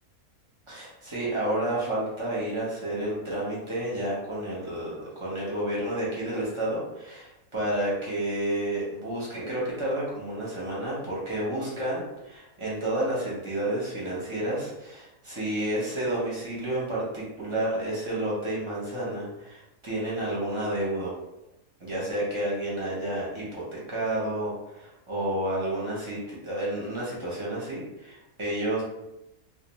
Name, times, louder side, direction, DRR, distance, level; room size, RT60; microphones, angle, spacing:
voice 1, 0.7-21.1 21.8-28.8, right 1 dB, 30° right, -7 dB, 0.6 m, -30 dB
2.5 x 2.1 x 3.0 m, 0.92 s
omnidirectional pair, 1.5 m